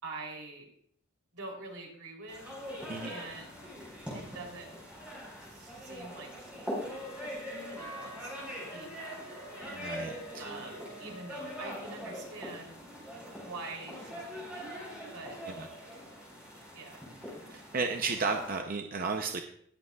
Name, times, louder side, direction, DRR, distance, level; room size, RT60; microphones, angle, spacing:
voice 1, 0.0-0.7 1.3-2.4 3.0-3.6 4.1-4.7 5.5-9.2 10.4-12.8 13.3-15.4 16.7-17.1, right 2 dB, 90° right, 0 dB, 3.2 m, -46 dB
sound 1, 2.3-18.6, equal, 5° right, 4.6 m, -43 dB
Wind instrument woodwind instrument, 6.9-11.7, right 2 dB, 90° left, 0.8 m, -52 dB
voice 2, 9.8-10.4 15.5-15.7 17.5-19.4, right 4 dB, 40° right, 4 dB, 0.6 m, -33 dB
19.0 x 8.0 x 2.3 m, 0.66 s
head